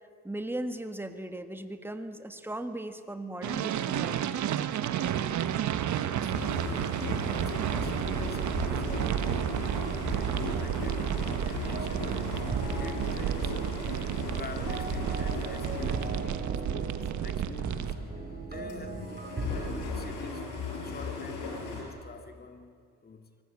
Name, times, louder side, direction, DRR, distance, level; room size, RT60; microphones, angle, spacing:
voice 1, 0.2-4.2, right 1 dB, 5° right, 1.7 m, -37 dB
sound 1, 3.4-17.9, right 10 dB, 70° right, 1.3 m, -31 dB
voice 2, 5.8-6.6 7.1-14.1 14.4-16.3 16.6-20.5 20.7-23.3, left 4 dB, 30° left, 2.0 m, -46 dB
sound 2, 6.3-18.3 18.6-21.8, left 4 dB, 85° left, 6.1 m, -38 dB
sound 3, 11.7-20.2, right 3 dB, 30° right, 3.9 m, -39 dB
25.0 x 18.5 x 8.6 m
cardioid pair, 90°, 30 cm